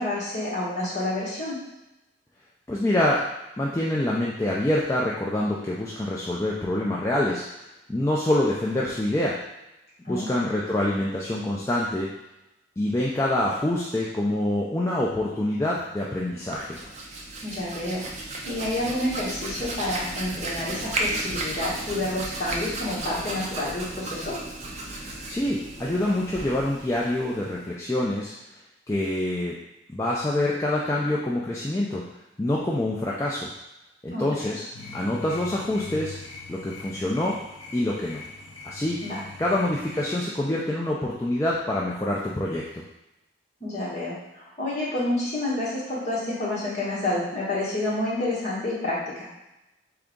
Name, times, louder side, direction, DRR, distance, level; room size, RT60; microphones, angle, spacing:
voice 1, 0.0-1.6 10.0-10.5 17.4-18.0 18.4-24.4 34.1-34.6 39.0-39.2 43.6-49.3, left 1 dB, 35° left, -8 dB, 1.5 m, -29 dB
voice 2, 2.7-3.2 3.6-7.4 7.9-9.4 10.1-12.1 12.8-16.8 25.3-28.3 28.9-29.6 29.9-32.1 32.4-33.5 34.0-34.6 34.9-36.2 36.5-37.4 37.7-38.2 38.6-39.0 39.4-42.8, left 1 dB, 15° left, -5 dB, 0.4 m, -26 dB
Hands, 16.3-27.7, right 2 dB, 35° right, 0.6 m, -34 dB
sound 1, 34.7-40.2, left 3 dB, 75° left, 0.6 m, -41 dB
3.9 x 3.5 x 3.6 m, 0.94 s
head